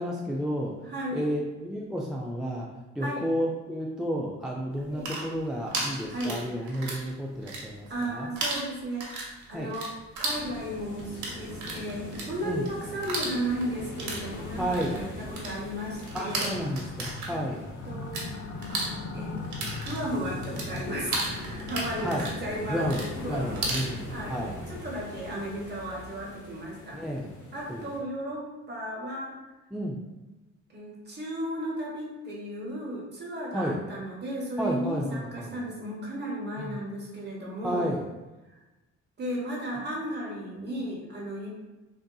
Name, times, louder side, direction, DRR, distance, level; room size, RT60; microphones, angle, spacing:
voice 1, 0.0-0.7 1.1-2.7 3.0-8.3 9.5-9.7 12.4-12.7 14.6-15.0 16.1-17.6 22.0-22.3 22.7-24.5 26.9-27.3 27.7-27.9 29.7-30.0 33.5-33.8 34.6-35.6 36.6-36.8 37.6-38.0, equal, ahead, -3 dB, 0.3 m, -31 dB
voice 2, 0.8-1.3 3.0-3.3 4.9-5.1 6.1-6.8 7.9-16.5 17.3-17.4 17.8-18.5 19.1-19.4 19.8-24.4 24.7-27.0 27.5-29.3 30.7-37.9 39.2-41.5, right 1 dB, 35° right, -2 dB, 1.0 m, -35 dB
sound 1, 4.8-7.1 7.4-8.1 8.4-18.3 18.6-23.9, right 2 dB, 75° right, 0.9 m, -34 dB
sound 2, 10.2-28.0, left 2 dB, 75° left, 0.8 m, -42 dB
sound 3, 16.0-26.5, left 3 dB, 55° left, 0.5 m, -41 dB
3.6 x 2.6 x 2.3 m, 1.1 s
cardioid pair, 90°, 30 cm